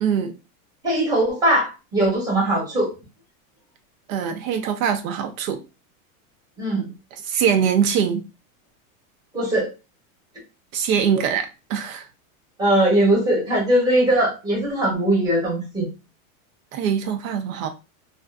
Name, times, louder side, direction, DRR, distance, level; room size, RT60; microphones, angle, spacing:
voice 1, 0.0-0.3 4.1-5.6 7.2-8.2 10.7-12.0 16.7-17.7, right 7 dB, 70° right, 0.5 m, -23 dB
voice 2, 0.8-2.9 6.6-6.9 9.3-9.7 12.6-15.9, right 1 dB, 10° right, 0.8 m, -20 dB
2.4 x 2.4 x 2.3 m
supercardioid pair, 160°, 43 cm